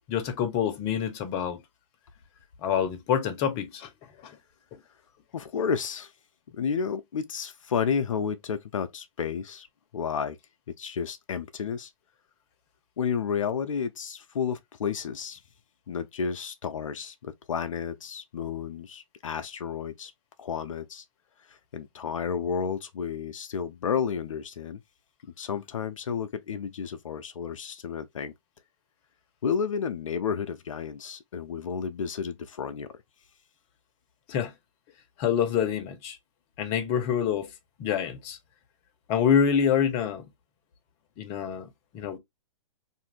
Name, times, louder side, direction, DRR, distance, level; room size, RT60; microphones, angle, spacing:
voice 1, 0.1-1.6 2.6-3.9 4.2-4.3 34.3-34.5 35.2-36.2 36.6-37.5 37.8-38.4 39.1-40.2 41.2-41.7 41.9-42.2, left 8 dB, 30° left, 0.7 m, -26 dB
voice 2, 5.3-6.1 6.5-9.7 9.9-10.4 10.7-11.9 13.0-15.4 15.9-20.1 20.4-21.0 21.5-24.8 25.2-28.3 29.4-32.9, left 6 dB, 75° left, 0.4 m, -31 dB
2.6 x 2.5 x 3.0 m
hypercardioid pair, 125°, 17 cm